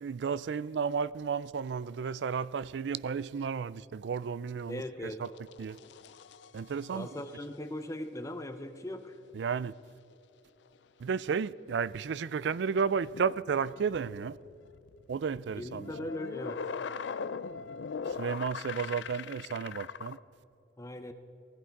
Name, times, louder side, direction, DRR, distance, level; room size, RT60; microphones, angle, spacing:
voice 1, 0.0-5.3 5.6-5.8 6.5-7.1 9.3-9.7 11.0-14.4 15.1-15.9 18.1-20.2, right 6 dB, 70° right, 0.4 m, -33 dB
voice 2, 4.7-5.2 6.9-9.2 15.5-16.6 20.8-21.1, left 1 dB, 15° left, 0.6 m, -39 dB
sound 1, 5.2-7.4 11.7-11.8 12.9-20.2, left 5 dB, 70° left, 0.4 m, -41 dB
19.5 x 14.5 x 4.7 m
head